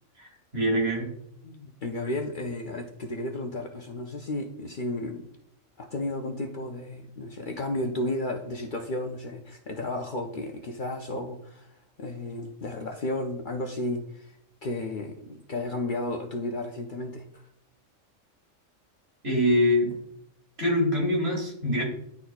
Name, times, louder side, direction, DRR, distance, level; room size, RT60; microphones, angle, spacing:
voice 1, 0.5-1.1 19.2-19.9 20.6-21.8, equal, 50° right, -2 dB, 2.4 m, -24 dB
voice 2, 1.4-5.3 5.8-14.4 14.6-17.4, left 2 dB, 50° left, 2 dB, 0.6 m, -33 dB
11.0 x 4.1 x 2.3 m, 0.73 s
omnidirectional pair, 1.4 m